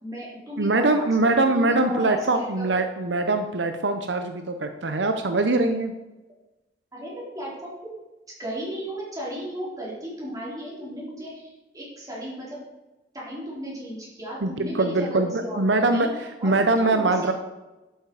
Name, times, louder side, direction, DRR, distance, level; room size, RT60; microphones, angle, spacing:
voice 1, 0.0-1.3 1.5-2.7 6.9-7.7 8.4-12.6 13.1-16.1 16.4-17.3, equal, 20° right, -6 dB, 4.5 m, -35 dB
voice 2, 0.6-5.9 14.4-16.1 16.4-17.3, right 2 dB, 75° right, 7 dB, 0.8 m, -22 dB
11.5 x 9.0 x 4.9 m, 1.1 s
head